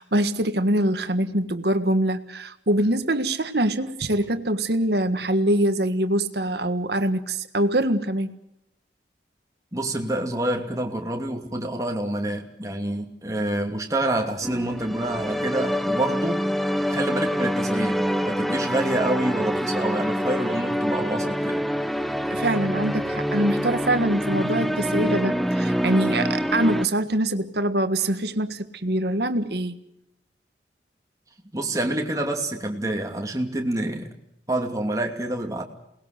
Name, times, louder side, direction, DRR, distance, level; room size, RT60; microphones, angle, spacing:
voice 1, 0.0-8.3 22.3-29.8, right 1 dB, 65° right, 1.6 m, -24 dB
voice 2, 9.7-16.4 16.9-21.6 31.5-34.1 34.5-35.6, right 1 dB, 20° right, 2.7 m, -27 dB
sound 1, 14.4-26.9, equal, ahead, 0.8 m, -26 dB
28.0 x 20.0 x 6.7 m
head